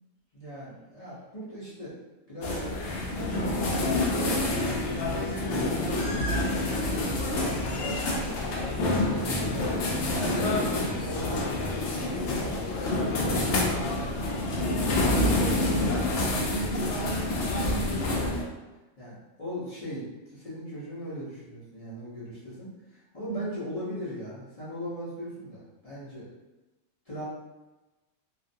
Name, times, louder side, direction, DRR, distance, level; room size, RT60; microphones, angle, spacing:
voice 1, 0.3-1.9 2.3-2.8 3.6-14.1 14.5-15.2 19.0-26.3 27.1-27.2, equal, 35° left, -10 dB, 0.7 m, -39 dB
sound 1, 2.4-18.4, left 2 dB, 65° left, 0.7 m, -27 dB
voice 2, 10.2-10.5 14.7-18.1 23.3-23.6, right 3 dB, 85° right, -8 dB, 0.4 m, -36 dB
2.4 x 2.4 x 2.6 m, 1.1 s
omnidirectional pair, 1.5 m